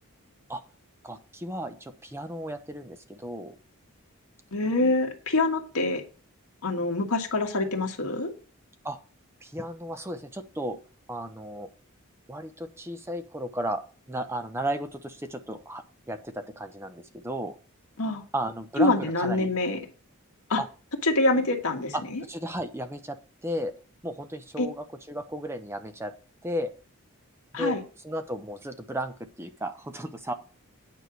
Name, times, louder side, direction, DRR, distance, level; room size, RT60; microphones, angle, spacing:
voice 1, 1.0-3.6 8.8-9.0 9.4-10.8 11.1-11.7 12.3-13.8 14.1-17.6 18.3-19.5 20.6-20.7 21.9-23.2 23.4-23.7 24.0-26.1 26.4-26.7 27.5-27.7 28.0-30.3, right 1 dB, 10° right, 8 dB, 0.7 m, -34 dB
voice 2, 4.5-6.0 6.6-8.3 18.0-18.2 18.8-19.8 20.5-20.6 21.0-22.2 24.6-24.7 27.5-27.8, left 2 dB, 75° left, 2 dB, 1.6 m, -25 dB
9.5 x 4.9 x 6.1 m, 0.37 s
head